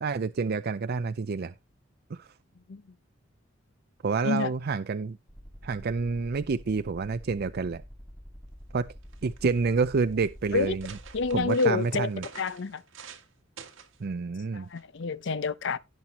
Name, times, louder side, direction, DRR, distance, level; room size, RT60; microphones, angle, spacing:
voice 1, 0.0-1.5 2.1-2.3 4.0-5.2 5.6-7.8 8.7-8.9 9.2-10.9 11.3-12.2 14.0-14.7, right 4 dB, 55° right, 0.5 m, -28 dB
sound 1, 5.3-11.5, equal, ahead, 4.4 m, -46 dB
sound 2, 8.7-8.8 9.0-9.6 10.2-10.3 10.6-13.3 13.6-14.0 14.7-15.0, right 6 dB, 80° right, 1.9 m, -47 dB
voice 2, 11.1-12.1 12.4-12.8 14.5-15.8, left 4 dB, 65° left, 0.6 m, -28 dB
17.0 x 5.9 x 2.9 m
head